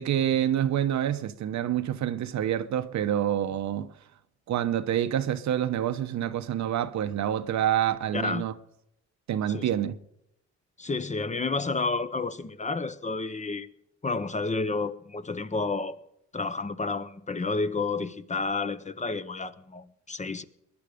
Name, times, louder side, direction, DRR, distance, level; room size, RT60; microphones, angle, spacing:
voice 1, 0.0-3.9 4.5-8.5 9.3-10.0, right 10 dB, 65° right, 1.0 m, -27 dB
voice 2, 8.1-8.4 9.5-9.7 10.8-13.7 14.0-16.0 16.3-20.4, left 3 dB, 25° left, 0.9 m, -30 dB
21.5 x 10.5 x 5.1 m
cardioid pair, 90°, 30 cm